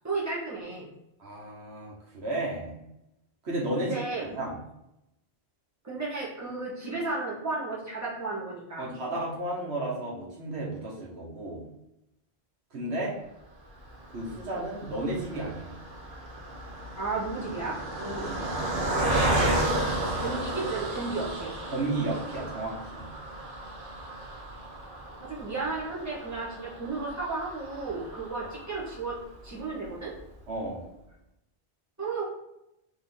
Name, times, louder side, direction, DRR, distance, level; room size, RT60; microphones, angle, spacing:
voice 1, 0.0-0.9 3.8-4.2 5.8-8.8 17.0-17.8 20.1-21.5 25.2-29.2 29.4-30.1 32.0-32.3, right 3 dB, 15° right, -7 dB, 1.3 m, -33 dB
voice 2, 1.2-2.7 3.4-3.9 4.2-4.6 8.8-11.6 12.7-13.1 14.1-15.7 18.0-18.6 21.7-23.0 30.5-30.9, right 2 dB, 80° right, -4 dB, 1.4 m, -33 dB
Car passing by, 13.8-29.3 29.8-29.9 30.2-30.4, right 1 dB, 60° right, 0.9 m, -33 dB
3.7 x 3.1 x 3.7 m, 0.84 s
omnidirectional pair, 1.1 m